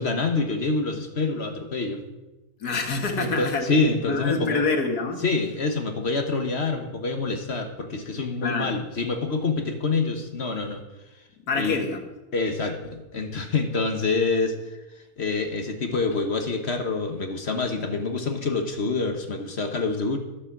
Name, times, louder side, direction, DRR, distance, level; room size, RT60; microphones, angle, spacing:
voice 1, 0.0-2.0 3.2-4.6 5.2-10.8 11.5-11.8 12.3-14.5 15.2-20.2, left 3 dB, 45° left, 5 dB, 1.4 m, -26 dB
voice 2, 2.6-3.8 4.0-5.2 8.4-8.7 11.5-12.0, left 3 dB, 80° left, 4 dB, 2.1 m, -26 dB
13.0 x 7.0 x 7.3 m, 1.0 s
omnidirectional pair, 1.6 m